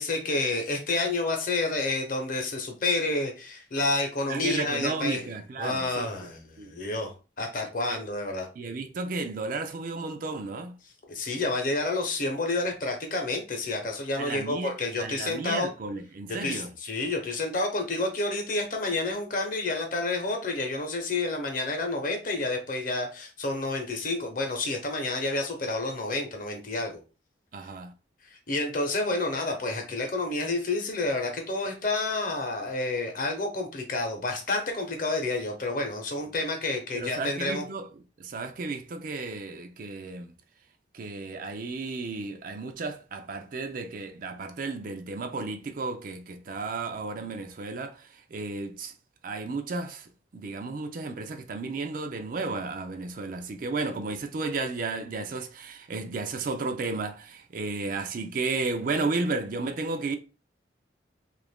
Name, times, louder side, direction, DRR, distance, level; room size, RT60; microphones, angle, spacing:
voice 1, 0.0-5.3 5.6-7.1 7.4-8.5 11.1-15.7 16.3-27.0 28.5-37.7, left 2 dB, 45° left, 0.8 m, -29 dB
voice 2, 4.3-6.1 6.6-6.7 7.9-8.0 8.6-10.8 14.2-16.7 27.5-27.9 36.9-37.9 38.2-40.3 40.9-48.9 49.2-60.2, right 3 dB, 45° right, 0.4 m, -33 dB
3.0 x 2.5 x 3.4 m
head